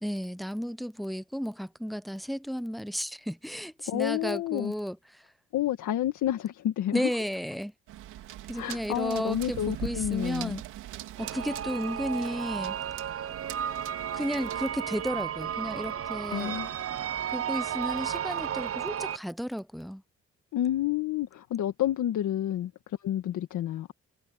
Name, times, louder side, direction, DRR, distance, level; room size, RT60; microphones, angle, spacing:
voice 1, 0.0-5.3 6.9-7.7 8.5-10.6 11.2-12.8 14.1-16.6 17.3-20.0, equal, ahead, 0.8 m, -33 dB
voice 2, 3.9-4.7 5.5-7.1 8.5-10.6 16.3-16.7 20.5-23.9, left 12 dB, 75° left, 1.8 m, -29 dB
sound 1, 7.9-14.7, right 13 dB, 90° right, 3.2 m, -42 dB
sound 2, 11.2-19.2, right 9 dB, 50° right, 0.8 m, -33 dB
cardioid pair, 90°, 30 cm